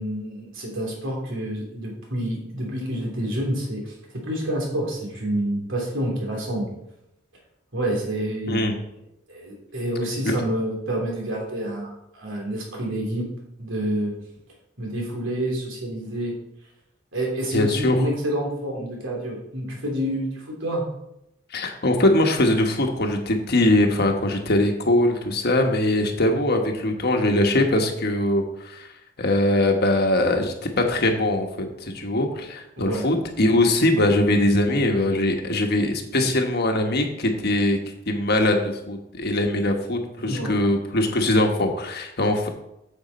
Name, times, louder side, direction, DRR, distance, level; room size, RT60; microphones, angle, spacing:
voice 1, 0.0-3.9 4.2-6.7 7.7-8.7 9.3-13.3 13.6-14.1 14.8-16.3 17.1-20.9 32.8-33.1 40.2-40.6, right 1 dB, 70° right, -1 dB, 3.4 m, -28 dB
voice 2, 17.5-18.0 21.5-28.9 29.2-37.8 38.1-42.5, left 1 dB, 55° left, 3 dB, 1.3 m, -21 dB
9.3 x 7.2 x 4.3 m, 0.83 s
head